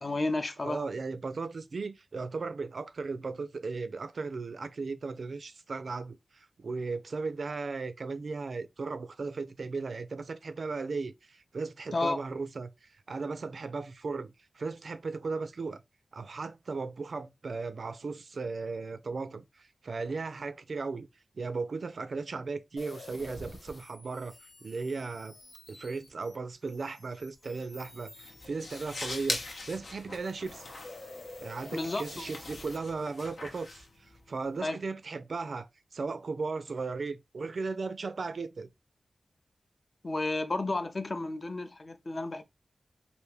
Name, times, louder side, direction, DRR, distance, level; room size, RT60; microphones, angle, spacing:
voice 1, 0.0-0.9 11.9-12.2 31.7-32.2 34.6-34.8 40.0-42.4, left 2 dB, 40° left, 0.5 m, -32 dB
voice 2, 0.6-15.8 16.1-21.1 21.3-24.3 24.6-25.4 25.7-30.7 31.4-38.7, right 4 dB, 65° right, 0.3 m, -36 dB
sound 1, 22.8-29.6 30.0-32.8, left 2 dB, 70° left, 1.2 m, -49 dB
sound 2, 27.7-34.6, left 3 dB, 90° left, 0.9 m, -41 dB
3.4 x 2.5 x 3.2 m
wide cardioid pair, 115°, 0 cm